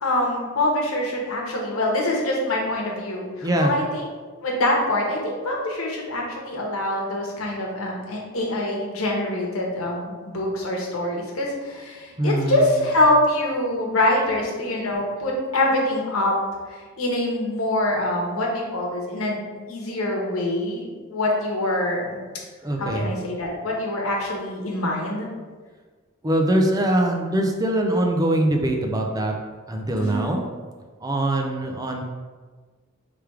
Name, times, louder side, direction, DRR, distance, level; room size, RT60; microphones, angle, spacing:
voice 1, 0.0-4.1 4.4-16.3 17.0-19.4 19.7-22.2 22.8-25.3 30.0-30.4, left 1 dB, 85° left, -1 dB, 1.0 m, -24 dB
voice 2, 3.4-3.7 12.2-12.8 22.6-23.1 26.2-29.3 29.7-30.4 31.0-32.0, right 1 dB, 20° right, 2 dB, 0.4 m, -22 dB
3.4 x 3.3 x 4.7 m, 1.4 s
head